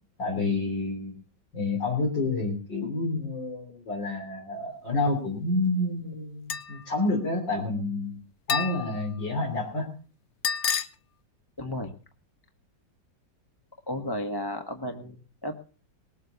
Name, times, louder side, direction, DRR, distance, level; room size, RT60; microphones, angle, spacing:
voice 1, 0.2-1.1 1.5-8.2 8.5-9.9, left 2 dB, 75° left, -1 dB, 4.1 m, -29 dB
sound 1, 6.5-6.8 8.5-9.1 10.4-10.9, left 6 dB, 50° left, 0.9 m, -29 dB
voice 2, 11.6-11.9 13.9-15.6, left 1 dB, 15° left, 4 dB, 1.2 m, -33 dB
20.0 x 8.1 x 6.9 m, 0.38 s
omnidirectional pair, 2.0 m